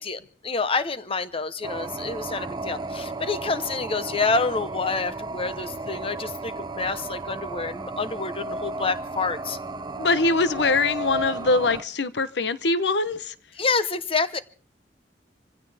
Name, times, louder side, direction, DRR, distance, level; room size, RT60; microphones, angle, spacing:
voice 1, 0.0-9.6 13.5-14.4, left 4 dB, 30° left, 12 dB, 0.9 m, -28 dB
sound 1, 1.6-11.8, right 2 dB, 25° right, 0.7 m, -34 dB
voice 2, 10.0-13.3, left 3 dB, 70° left, 14 dB, 0.9 m, -23 dB
25.0 x 16.0 x 3.5 m, 0.40 s
head